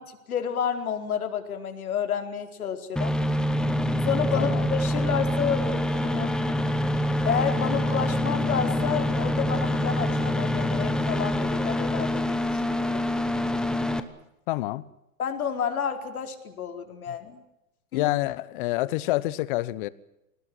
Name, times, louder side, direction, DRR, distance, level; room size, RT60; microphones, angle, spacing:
voice 1, 0.3-3.1 4.0-6.4 7.2-13.0 15.2-17.4 17.9-18.1, left 7 dB, 90° left, 4.6 m, -30 dB
sound 1, 3.0-14.0, left 1 dB, ahead, 0.9 m, -26 dB
voice 2, 4.3-4.7 14.5-14.8 17.1-17.2 17.9-19.9, left 18 dB, 40° left, 1.1 m, -27 dB
28.0 x 19.0 x 7.8 m
hypercardioid pair, 155°, 42 cm